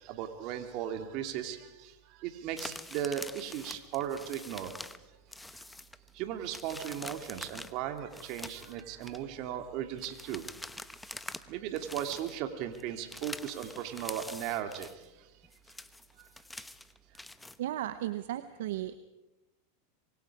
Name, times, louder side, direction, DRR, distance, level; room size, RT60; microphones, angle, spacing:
voice 1, 0.0-1.9 2.2-4.7 6.1-10.4 11.5-14.9, right 10 dB, 55° right, 7 dB, 2.8 m, -37 dB
sound 1, 2.6-5.1 5.3-6.1 6.4-9.2 10.0-11.5 11.8-12.4 12.7-15.0 15.4-17.6, left 2 dB, 5° left, 1.0 m, -45 dB
voice 2, 17.6-19.0, right 13 dB, 70° right, 12 dB, 1.0 m, -35 dB
26.0 x 23.0 x 5.0 m, 1.0 s
hypercardioid pair, 100°, 0 cm